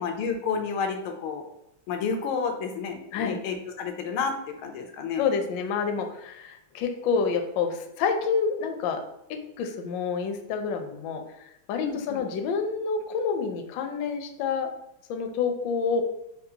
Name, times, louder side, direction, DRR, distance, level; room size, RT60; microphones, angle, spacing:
voice 1, 0.0-1.4 1.9-5.2 11.8-12.3, left 5 dB, 90° left, 4 dB, 1.5 m, -30 dB
voice 2, 5.2-9.0 9.6-11.2 11.7-14.7 15.1-16.0, left 5 dB, 75° left, 5 dB, 1.1 m, -28 dB
5.1 x 2.4 x 2.7 m, 0.80 s
omnidirectional pair, 2.3 m